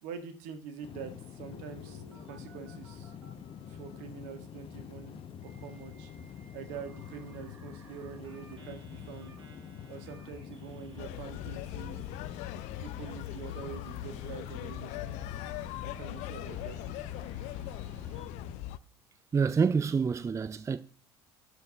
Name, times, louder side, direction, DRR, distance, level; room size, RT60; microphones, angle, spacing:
voice 1, 0.0-3.1 3.7-6.1 6.5-9.4 9.9-12.0 12.8-16.8, right 7 dB, 65° right, 1.8 m, -45 dB
sound 1, 0.8-18.5, left 7 dB, 40° left, 1.1 m, -46 dB
Telephone, 1.5-4.0 5.4-18.3, right 3 dB, 85° right, 1.8 m, -59 dB
sound 2, 11.0-18.8, left 14 dB, 60° left, 0.6 m, -40 dB
voice 2, 19.3-20.8, right 5 dB, 20° right, 0.5 m, -27 dB
12.0 x 4.7 x 5.8 m
figure-of-eight pair, 65°, 14 cm